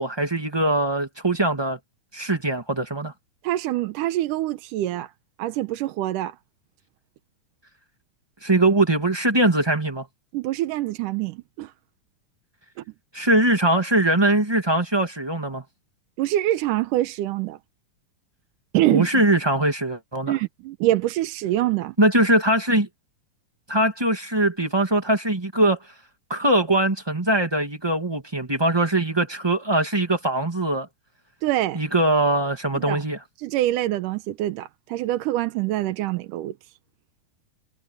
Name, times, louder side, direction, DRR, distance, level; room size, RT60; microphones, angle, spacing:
voice 1, 0.0-1.8 2.1-3.1 8.4-10.0 13.1-15.6 18.9-20.4 22.0-22.9 23.7-25.8 26.3-30.9 31.7-33.2, right 1 dB, 15° right, 0.9 m, -21 dB
voice 2, 3.4-5.1 5.4-6.4 10.3-11.7 16.2-17.6 18.7-19.1 20.3-22.0 31.4-31.8 32.8-33.0 33.4-36.6, right 15 dB, 75° right, 2.3 m, -25 dB
omnidirectional pair, 3.9 m